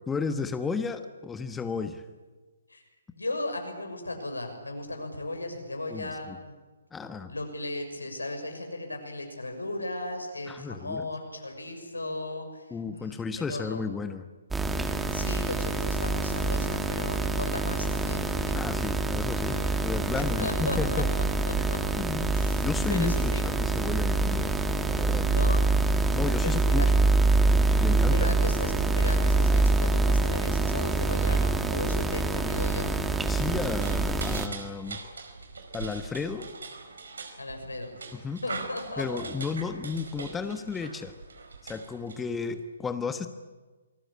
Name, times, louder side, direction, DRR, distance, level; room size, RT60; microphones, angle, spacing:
voice 1, 0.1-2.0 5.9-6.4 6.9-7.3 10.5-11.1 12.7-14.3 18.5-21.1 21.6-21.7 22.0-24.5 24.9-25.3 26.1-27.1 27.5-28.3 33.3-35.0 35.7-36.5 38.1-38.4 39.0-41.1 41.6-43.3, left 5 dB, 10° left, 9 dB, 1.3 m, -33 dB
voice 2, 3.1-6.5 7.3-13.8 15.1-18.7 19.5-19.7 20.1-21.0 21.4-22.0 22.3-22.6 22.9-23.4 25.2-25.6 26.4-26.9 28.1-32.9 37.4-38.0 38.4-39.2, left 2 dB, 85° left, 4 dB, 6.4 m, -36 dB
sound 1, 14.5-34.5, right 3 dB, 5° right, 1.6 m, -25 dB
sound 2, 33.6-42.6, right 4 dB, 70° right, 4.8 m, -42 dB
28.0 x 20.0 x 8.7 m, 1.3 s
figure-of-eight pair, 130°, 0 cm